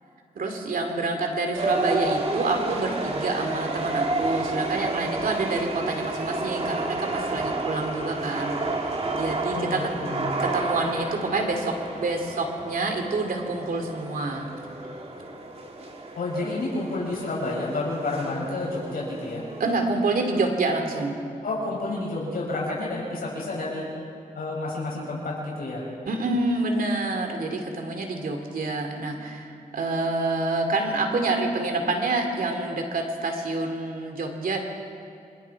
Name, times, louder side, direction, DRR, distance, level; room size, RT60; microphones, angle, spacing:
voice 1, 0.3-8.6 8.8-9.9 10.4-14.5 19.6-21.2 26.1-34.6, right 3 dB, 75° right, 3 dB, 2.8 m, -27 dB
sound 1, 1.5-19.9, right 2 dB, 45° right, 2.3 m, -31 dB
voice 2, 9.5-10.4 16.2-19.4 21.4-23.9 24.3-25.8, left 2 dB, 85° left, -4 dB, 6.8 m, -30 dB
27.0 x 26.0 x 4.8 m, 2.5 s
wide cardioid pair, 125°, 15 cm